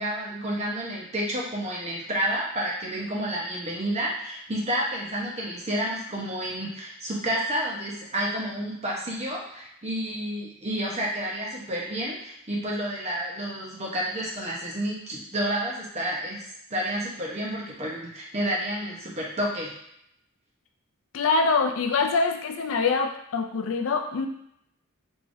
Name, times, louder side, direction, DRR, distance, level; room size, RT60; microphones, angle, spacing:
voice 1, 0.0-16.4 16.7-19.7, right 1 dB, 30° right, -3 dB, 0.8 m, -30 dB
voice 2, 21.1-24.3, left 4 dB, 65° left, 4 dB, 0.4 m, -24 dB
3.6 x 3.2 x 2.6 m, 0.73 s
head